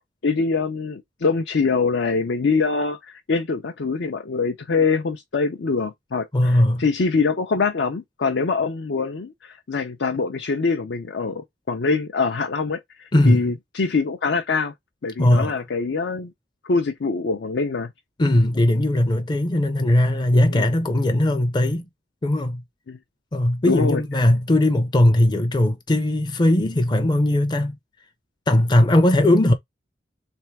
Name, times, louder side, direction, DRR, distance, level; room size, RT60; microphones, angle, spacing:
voice 1, 0.2-14.7 15.0-16.3 16.6-17.9 20.5-20.7 22.9-23.0 23.7-24.0, left 4 dB, 70° left, 0.5 m, -24 dB
voice 2, 6.3-6.8 13.1-13.4 15.2-15.5 18.2-21.9 22.2-22.6 23.3-27.8 28.5-29.5, left 1 dB, 25° left, 0.5 m, -19 dB
3.4 x 3.4 x 4.5 m
head